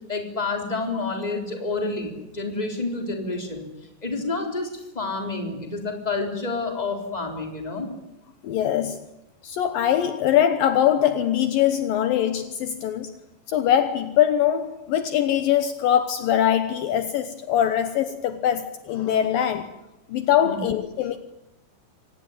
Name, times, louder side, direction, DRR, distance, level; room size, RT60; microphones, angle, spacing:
voice 1, 0.1-3.7 4.0-7.9 20.4-20.6, left 3 dB, 10° left, 3.7 m, -29 dB
voice 2, 8.4-9.0 9.4-13.1 13.5-19.8 20.1-21.2, left 10 dB, 70° left, 2.6 m, -22 dB
25.0 x 18.5 x 9.5 m
omnidirectional pair, 4.4 m